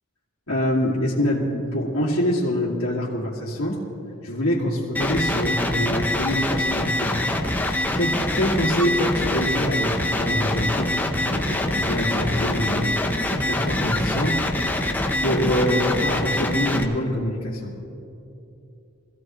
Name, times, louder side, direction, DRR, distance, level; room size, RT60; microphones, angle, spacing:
voice 1, 0.5-3.8 4.2-7.1 7.9-11.0 11.3-12.9 13.3-14.4 15.2-17.7, equal, 70° left, -8 dB, 2.3 m, -25 dB
sound 1, 4.9-16.8, left 1 dB, 10° left, 0.8 m, -24 dB
22.5 x 15.5 x 3.1 m, 2.8 s
head